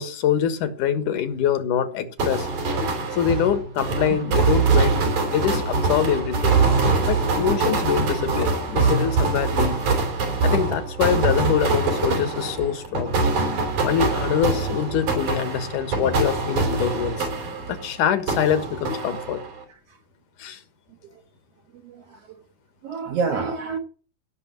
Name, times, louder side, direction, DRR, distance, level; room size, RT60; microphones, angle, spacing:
voice 1, 0.0-2.5 3.1-6.6 7.1-9.8 10.4-13.2 13.8-17.3 17.7-19.4 20.4-20.6, left 9 dB, 75° left, 2.9 m, -24 dB
sound 1, 2.2-17.9 18.3-19.6, right 4 dB, 75° right, 4.9 m, -23 dB
voice 2, 21.8-22.2 22.8-23.8, right 5 dB, 60° right, 2.0 m, -28 dB
16.5 x 6.6 x 7.4 m
omnidirectional pair, 3.7 m